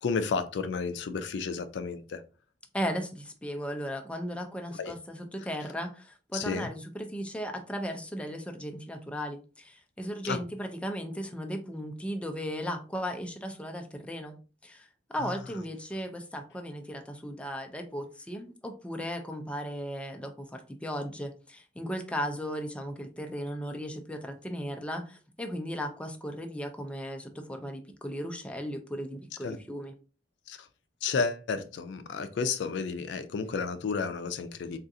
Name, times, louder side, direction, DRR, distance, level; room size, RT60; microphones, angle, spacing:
voice 1, 0.0-2.2 4.8-4.9 6.3-6.7 10.2-10.4 29.4-29.6 30.5-30.6 31.0-34.8, left 5 dB, 70° left, 0.4 m, -31 dB
voice 2, 2.7-29.9, equal, 5° left, 0.4 m, -36 dB
3.7 x 2.4 x 2.6 m
head